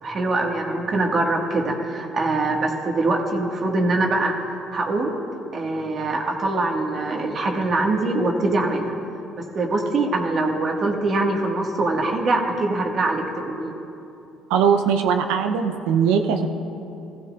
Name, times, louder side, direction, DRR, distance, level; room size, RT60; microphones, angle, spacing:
voice 1, 0.0-4.3 4.7-5.2 5.5-8.9 9.4-13.7, right 2 dB, 45° right, 0 dB, 1.8 m, -23 dB
voice 2, 14.5-16.5, right 7 dB, 85° right, 6 dB, 0.8 m, -20 dB
16.0 x 15.0 x 2.5 m, 2.8 s
supercardioid pair, 70°, 0 cm